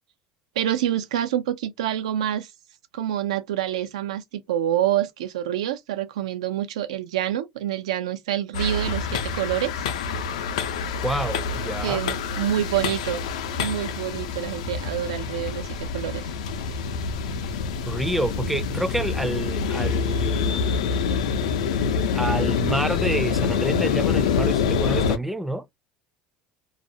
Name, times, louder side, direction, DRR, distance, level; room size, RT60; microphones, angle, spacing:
voice 1, 0.6-2.5 2.9-9.9 11.8-13.2 13.6-16.3, right 11 dB, 90° right, 0.4 m, -27 dB
sound 1, 8.5-25.2, left 5 dB, 90° left, 0.4 m, -26 dB
voice 2, 11.0-12.0 17.8-20.9 22.1-25.7, right 1 dB, 5° right, 0.4 m, -28 dB
2.4 x 2.0 x 2.6 m
supercardioid pair, 90°, 3 cm